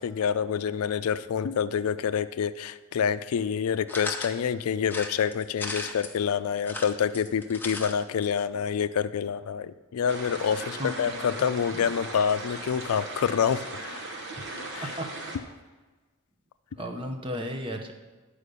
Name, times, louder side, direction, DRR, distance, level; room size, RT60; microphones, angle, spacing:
voice 1, 0.0-14.0 14.7-15.0, left 7 dB, 90° left, 13 dB, 0.4 m, -27 dB
sound 1, 3.9-4.4 4.9-6.1 6.6-7.9 8.2-8.3 8.5-8.6, left 2 dB, 10° left, 0.6 m, -36 dB
sound 2, 10.1-15.4, right 2 dB, 55° right, 1.1 m, -38 dB
voice 2, 10.8-11.4 14.3-14.5 14.8-15.1 16.8-17.9, equal, 25° right, 4 dB, 0.7 m, -35 dB
10.0 x 5.0 x 6.7 m, 1.3 s
head